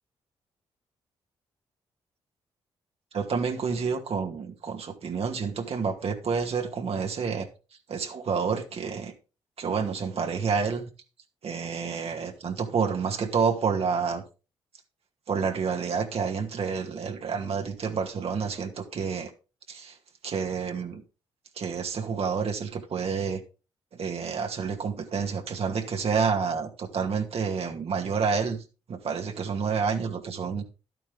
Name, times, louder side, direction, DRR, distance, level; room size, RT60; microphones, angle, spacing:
voice 1, 3.1-7.5 7.9-9.1 9.6-10.9 11.4-14.2 15.3-19.3 19.7-20.0 20.2-21.0 21.6-23.4 23.9-28.6 28.9-30.6, right 5 dB, 60° right, 2.3 m, -29 dB
12.0 x 9.1 x 3.6 m
hypercardioid pair, 50°, 12 cm